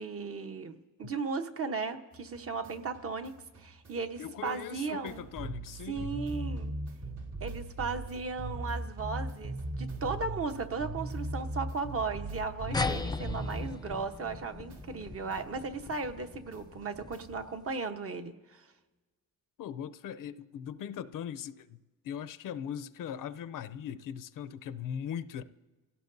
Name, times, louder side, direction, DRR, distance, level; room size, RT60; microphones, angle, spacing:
voice 1, 0.0-5.3 5.9-6.7 7.4-18.7, right 4 dB, 45° right, 1.1 m, -36 dB
sound 1, 2.1-14.4 14.7-17.5, right 2 dB, 60° right, 2.5 m, -40 dB
voice 2, 4.2-6.1 12.7-13.0 19.6-25.4, left 8 dB, 75° left, 0.6 m, -40 dB
sound 2, 12.7-17.6, left 3 dB, 10° left, 0.5 m, -38 dB
27.5 x 17.0 x 2.7 m
cardioid pair, 125°, 33 cm